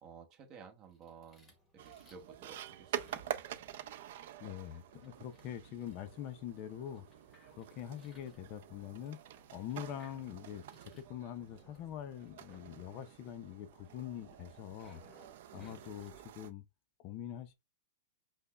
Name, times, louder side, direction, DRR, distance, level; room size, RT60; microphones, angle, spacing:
voice 1, 0.0-3.3 15.5-15.8, right 6 dB, 30° right, 0.8 m, -55 dB
sound 1, 0.8-16.3, left 1 dB, 10° left, 1.0 m, -66 dB
sound 2, 1.8-16.5, right 11 dB, 60° right, 0.4 m, -47 dB
voice 2, 4.4-7.0 7.5-9.2 9.5-15.0 15.5-16.7 17.0-17.5, left 10 dB, 35° left, 0.4 m, -44 dB
5.2 x 2.0 x 2.2 m
hypercardioid pair, 150°, 0 cm